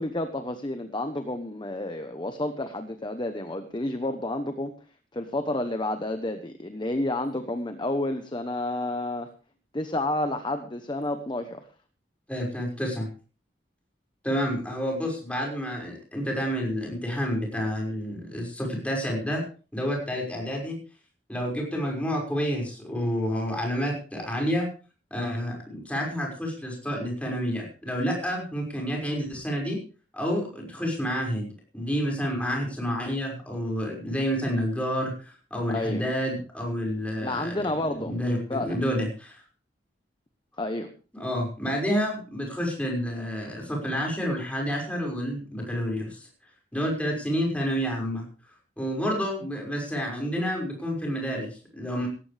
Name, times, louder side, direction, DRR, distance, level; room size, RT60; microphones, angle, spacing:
voice 1, 0.0-4.7 5.1-9.3 9.7-11.7 35.7-36.1 37.2-38.1 38.5-38.8 40.6-40.9, left 1 dB, 25° left, 8 dB, 1.0 m, -30 dB
voice 2, 12.3-13.1 14.2-19.4 19.7-20.8 21.3-24.7 25.1-29.8 30.1-31.5 31.7-37.6 38.0-39.4 41.1-46.3 46.7-48.3 48.8-52.1, equal, 10° left, -1 dB, 5.9 m, -29 dB
17.5 x 15.0 x 3.5 m, 0.38 s
head